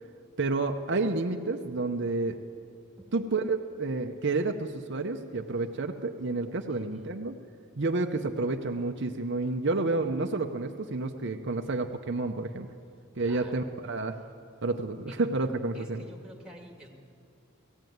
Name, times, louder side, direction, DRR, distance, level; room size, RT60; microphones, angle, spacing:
voice 1, 0.4-2.4 3.1-7.3 7.8-12.7 13.2-14.2 14.6-16.0, right 3 dB, 55° right, 4 dB, 0.7 m, -30 dB
voice 2, 6.7-7.1 13.2-13.7 15.1-15.2 15.7-16.9, equal, 5° right, 0 dB, 2.2 m, -49 dB
18.5 x 15.0 x 9.3 m, 2.5 s
head